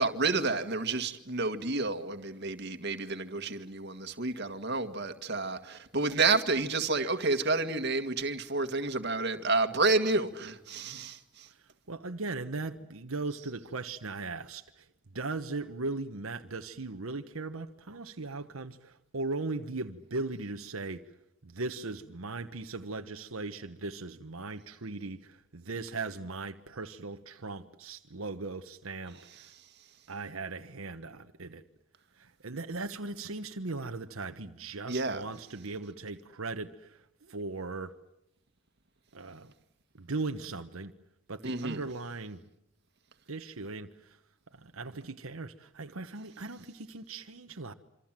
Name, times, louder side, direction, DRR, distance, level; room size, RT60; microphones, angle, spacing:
voice 1, 0.0-11.5 34.9-35.3 41.4-41.8, right 3 dB, 55° right, 1.9 m, -30 dB
voice 2, 11.5-14.9 15.1-21.1 21.4-29.5 30.1-31.6 32.1-38.0 39.1-39.5 40.0-40.9 41.3-42.4 43.3-44.2 44.5-47.7, right 3 dB, 85° right, 1.2 m, -38 dB
27.0 x 25.5 x 7.5 m
head